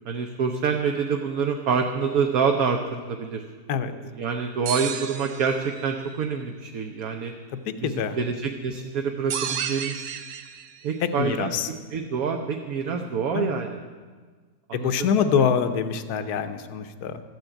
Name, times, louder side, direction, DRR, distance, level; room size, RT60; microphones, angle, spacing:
voice 1, 0.1-3.4 4.2-7.3 7.8-10.1 10.8-11.5 11.9-13.8 14.7-15.5, right 5 dB, 65° right, 3 dB, 1.3 m, -27 dB
sound 1, 4.7-5.9 9.3-10.8, right 8 dB, 85° right, 1.4 m, -32 dB
voice 2, 7.6-8.2 11.0-11.7 13.3-13.5 14.7-17.2, left 7 dB, 70° left, 9 dB, 1.3 m, -25 dB
14.0 x 8.2 x 9.0 m, 1.5 s
omnidirectional pair, 1.7 m